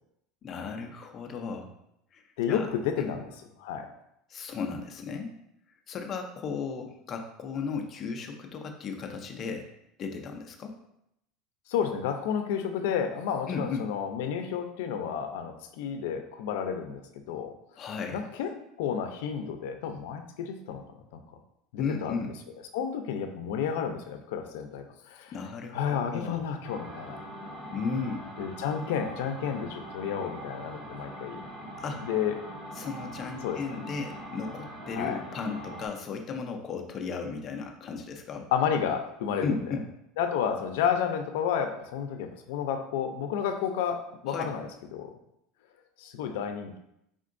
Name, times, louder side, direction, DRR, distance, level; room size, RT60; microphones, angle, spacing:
voice 1, 0.4-1.7 2.1-2.2 2.5-2.7 3.0-3.1 4.3-5.3 5.9-9.7 10.0-10.8 13.5-13.9 17.8-18.2 21.8-22.3 25.3-26.4 27.7-28.3 31.8-32.0 32.8-38.5 39.4-39.9 44.3-44.5, left 5 dB, 25° left, 3 dB, 0.4 m, -35 dB
voice 2, 2.4-3.3 3.6-3.9 11.7-17.0 17.3-17.5 18.1-18.5 18.8-21.2 21.7-22.1 22.7-25.3 25.7-27.2 28.4-31.4 31.9-32.4 33.4-33.8 34.9-35.2 38.5-39.6 40.2-45.1 46.0-46.8, left 8 dB, 80° left, 6 dB, 0.5 m, -31 dB
sound 1, 26.6-35.9, equal, 20° right, 0.8 m, -42 dB
4.3 x 3.7 x 2.5 m, 0.80 s
cardioid pair, 170°, 0 cm